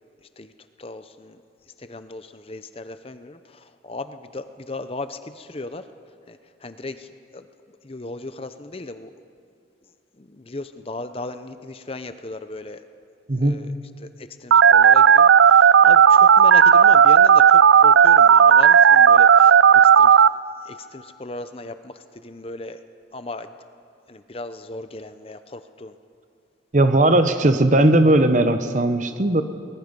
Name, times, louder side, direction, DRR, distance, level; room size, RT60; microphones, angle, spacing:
voice 1, 0.2-0.5 0.8-1.4 1.8-5.9 6.3-7.5 7.8-9.1 10.2-12.8 13.4-13.7 14.0-20.2 20.6-22.8 23.1-23.5 24.1-26.0, left 2 dB, 30° left, 10 dB, 0.7 m, -36 dB
voice 2, 13.3-13.6 26.7-29.4, right 1 dB, 40° right, 9 dB, 1.0 m, -17 dB
Telephone, 14.5-20.3, right 7 dB, 80° right, 0.4 m, -12 dB
24.0 x 20.5 x 5.3 m, 2.6 s
head